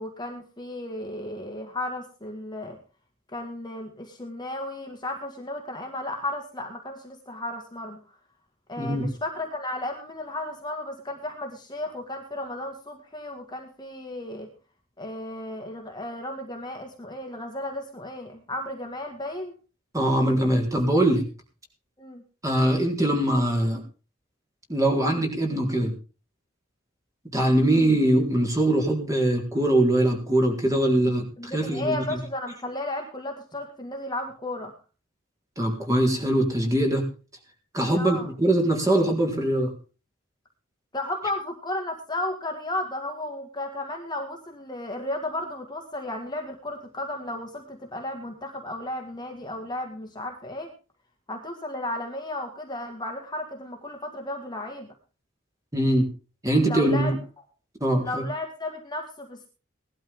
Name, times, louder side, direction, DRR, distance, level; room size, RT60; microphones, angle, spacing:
voice 1, 0.0-2.8 3.3-8.0 8.7-14.5 15.0-19.5 22.0-22.2 31.4-34.7 37.9-38.3 40.9-50.7 51.3-54.9 56.6-57.1 58.0-59.5, left 1 dB, 20° left, 3 dB, 1.9 m, -34 dB
voice 2, 8.8-9.1 19.9-21.2 22.4-23.8 24.7-25.9 27.3-31.3 31.5-32.2 35.6-37.1 37.7-39.7 55.7-56.1 56.4-57.2 57.8-58.2, right 1 dB, 15° right, 1 dB, 4.0 m, -22 dB
18.5 x 12.0 x 3.7 m, 0.35 s
head